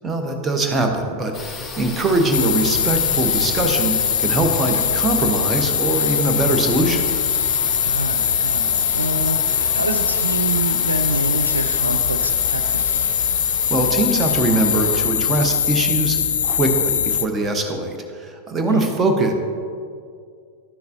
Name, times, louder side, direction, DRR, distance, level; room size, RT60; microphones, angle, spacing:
voice 1, 0.0-7.1 13.7-19.3, right 2 dB, 20° right, 3 dB, 1.0 m, -22 dB
sound 1, 1.3-17.0, left 3 dB, 15° left, 1.1 m, -34 dB
sound 2, 2.3-17.3, left 8 dB, 65° left, 0.3 m, -21 dB
voice 2, 7.8-13.2 18.7-18.9, right 2 dB, 80° right, 7 dB, 0.4 m, -27 dB
12.0 x 6.5 x 2.7 m, 2.2 s
figure-of-eight pair, 90°, 0 cm